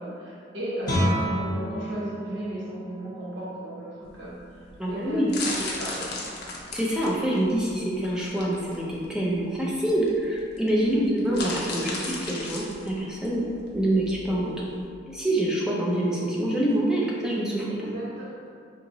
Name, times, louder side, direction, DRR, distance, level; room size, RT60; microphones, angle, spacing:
voice 1, 0.0-6.3 10.8-11.1 17.7-18.5, right 1 dB, 70° right, -8 dB, 1.1 m, -35 dB
Guitar, 0.8-6.4, equal, 25° left, 0.9 m, -32 dB
sound 1, 4.1-14.9, left 2 dB, 55° left, 0.6 m, -36 dB
voice 2, 4.8-5.3 6.7-13.4 13.7-14.5 15.1-17.9, right 1 dB, 5° right, -5 dB, 0.5 m, -26 dB
4.1 x 2.9 x 2.7 m, 2.2 s
head